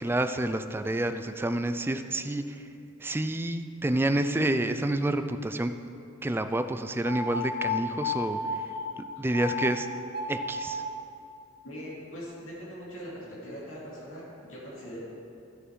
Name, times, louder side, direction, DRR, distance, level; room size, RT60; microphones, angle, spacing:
voice 1, 0.0-2.6 3.0-5.7 6.2-8.4 9.0-9.9 10.3-10.8, right 1 dB, 10° right, 9 dB, 0.3 m, -28 dB
sound 1, 7.0-8.8 9.3-9.7 10.0-10.9, left 3 dB, 50° right, 1.4 m, -32 dB
voice 2, 11.6-15.0, equal, 80° left, -6 dB, 2.5 m, -41 dB
13.0 x 6.6 x 4.7 m, 2.6 s
head